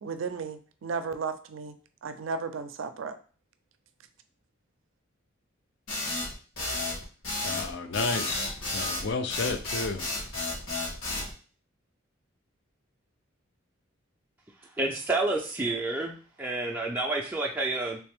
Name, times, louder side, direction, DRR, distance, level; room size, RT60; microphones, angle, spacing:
voice 1, 0.0-1.7 2.0-3.2, right 5 dB, 70° right, 0.4 m, -34 dB
sound 1, 5.9-11.3, left 2 dB, 85° left, 1.5 m, -32 dB
voice 2, 7.4-10.1, left 4 dB, 60° left, 0.5 m, -32 dB
voice 3, 14.8-18.0, right 2 dB, 10° right, 0.3 m, -29 dB
3.4 x 3.1 x 3.4 m
head